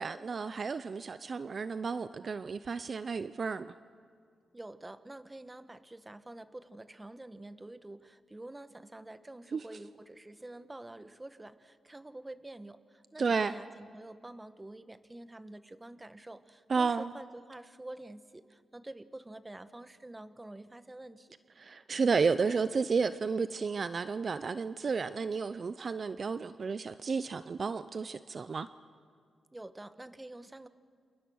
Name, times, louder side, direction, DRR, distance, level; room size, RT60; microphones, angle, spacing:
voice 1, 0.0-3.7 9.5-9.6 13.2-13.5 16.7-17.1 21.6-28.7, right 5 dB, 50° right, 13 dB, 0.6 m, -32 dB
voice 2, 4.5-21.4 29.5-30.7, right 1 dB, 20° right, 12 dB, 1.2 m, -48 dB
29.5 x 28.0 x 6.4 m, 2.2 s
cardioid pair, 80°, 0 cm